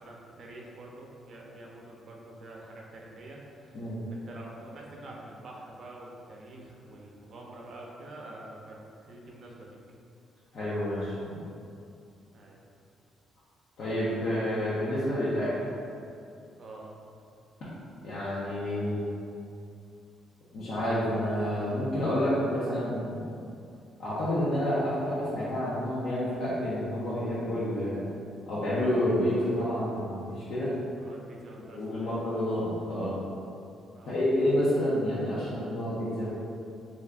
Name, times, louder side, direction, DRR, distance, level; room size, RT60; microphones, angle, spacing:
voice 1, 0.0-3.8 4.1-9.8 12.3-12.6 16.6-16.9 31.0-32.2 33.9-34.2, right 2 dB, 55° right, -2 dB, 0.5 m, -46 dB
voice 2, 10.5-11.4 13.8-15.5 18.0-19.1 20.5-23.3 24.0-28.0 28.5-30.7 31.6-33.2 34.1-36.3, left 1 dB, 70° left, -10 dB, 0.7 m, -29 dB
2.5 x 2.4 x 3.4 m, 2.5 s
cardioid pair, 90°, 0 cm